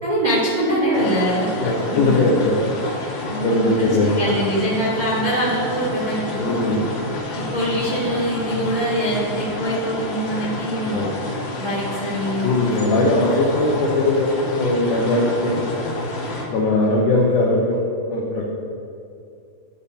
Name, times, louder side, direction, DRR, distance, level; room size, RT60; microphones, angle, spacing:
voice 1, 0.0-2.2 3.3-6.8 7.5-11.0 11.6-12.5, right 1 dB, 75° right, -10 dB, 0.8 m, -23 dB
sound 1, 0.9-16.4, left 2 dB, 65° left, 2.5 m, -29 dB
voice 2, 1.6-2.7 3.4-4.2 6.4-6.8 10.9-11.2 12.4-16.0 16.5-18.5, left 2 dB, 85° left, -3 dB, 1.8 m, -20 dB
13.0 x 5.1 x 2.8 m, 2.4 s
omnidirectional pair, 4.7 m